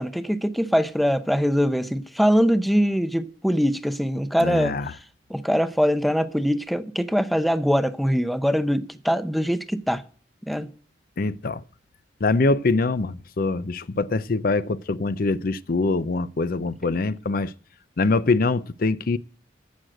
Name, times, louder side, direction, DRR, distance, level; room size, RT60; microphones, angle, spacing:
voice 1, 0.0-4.8 5.3-10.0 10.5-10.7, equal, ahead, 0.6 m, -22 dB
voice 2, 4.4-4.9 11.2-11.6 12.2-17.5 18.0-19.2, left 3 dB, 55° left, 0.6 m, -24 dB
15.0 x 6.5 x 7.7 m
head